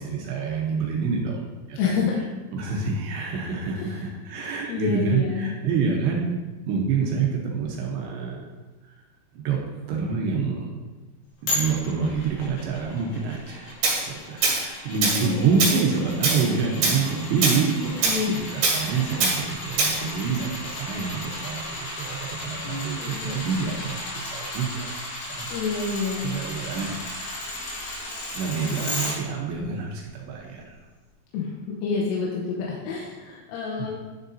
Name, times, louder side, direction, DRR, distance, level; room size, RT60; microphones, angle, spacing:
voice 1, 0.0-2.0 2.5-6.2 6.7-8.5 8.8-8.9 9.3-9.6 9.9-10.7 11.4-24.9 25.3-25.5 26.2-27.5 28.3-30.8 33.8-33.9, right 5 dB, 80° right, -1 dB, 2.6 m, -27 dB
voice 2, 1.8-2.3 4.7-5.5 15.1-15.8 17.8-18.4 22.7-23.4 25.5-26.3 31.3-31.5 31.8-34.0, left 5 dB, 85° left, -4 dB, 3.4 m, -28 dB
sound 1, 11.5-29.1 29.6-29.7, left 1 dB, 65° left, 3.7 m, -35 dB
Tools, 13.8-14.0 14.4-14.6 15.0-15.3 15.6-15.8 16.2-16.5 16.8-17.0 17.4-17.6 18.0-18.2 18.6-18.8 19.2-19.4 19.8-20.0, right 4 dB, 60° right, 3.1 m, -22 dB
10.5 x 6.6 x 2.7 m, 1.2 s
omnidirectional pair, 5.9 m